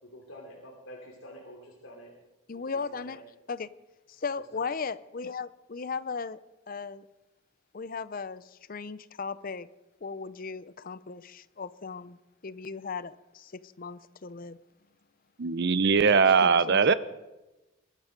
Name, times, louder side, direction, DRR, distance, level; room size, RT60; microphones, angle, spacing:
voice 1, 0.0-2.1 2.5-3.2 4.2-4.7, equal, 75° left, 3.0 m, -48 dB
voice 2, 2.5-3.2 3.5-3.7 4.1-6.4 6.7-7.1 7.7-9.7 10.0-12.2 12.4-14.6 16.2-16.9, left 5 dB, 40° left, 0.6 m, -37 dB
voice 3, 15.4-16.9, right 5 dB, 50° right, 0.6 m, -21 dB
22.0 x 12.5 x 5.2 m
head